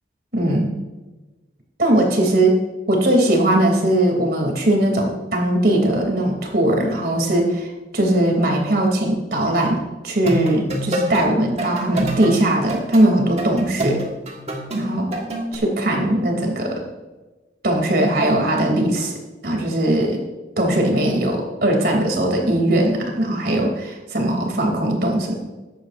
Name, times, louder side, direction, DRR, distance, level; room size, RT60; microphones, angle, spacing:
voice 1, 0.3-0.7 1.8-2.6 2.9-7.7 7.9-14.0 14.7-15.1 15.5-16.8 17.6-19.1 19.4-20.2 20.6-25.5, right 1 dB, 60° right, 1 dB, 3.0 m, -19 dB
sound 1, 10.2-11.2 11.6-15.6, right 1 dB, 35° right, 1.6 m, -27 dB
14.5 x 11.0 x 2.6 m, 1.2 s
head